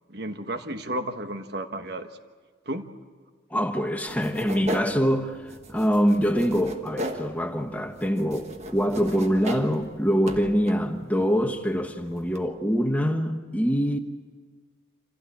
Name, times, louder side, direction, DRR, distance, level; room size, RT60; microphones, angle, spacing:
voice 1, 0.1-2.1 2.6-2.9, right 1 dB, 55° right, 1.3 m, -32 dB
voice 2, 3.5-5.4 5.7-14.0, equal, 10° left, 1.2 m, -24 dB
sound 1, 4.1-12.5, equal, 35° right, 1.4 m, -38 dB
27.0 x 16.0 x 8.5 m
head